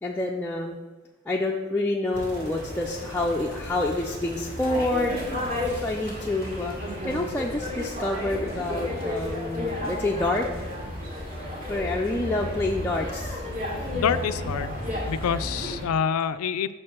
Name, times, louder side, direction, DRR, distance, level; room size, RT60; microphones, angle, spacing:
voice 1, 0.0-0.8 1.3-5.2 5.8-10.7 11.7-13.4, left 2 dB, 10° left, -2 dB, 0.4 m, -28 dB
sound 1, 2.1-15.8, left 1 dB, 40° right, 1.7 m, -33 dB
sound 2, 2.2-6.6, right 1 dB, 85° right, 2.0 m, -50 dB
sound 3, 5.4-10.8, equal, 15° right, 1.2 m, -50 dB
voice 2, 13.9-14.8 15.1-16.7, left 7 dB, 85° left, 13 dB, 0.4 m, -27 dB
5.9 x 4.4 x 6.3 m, 1.2 s
head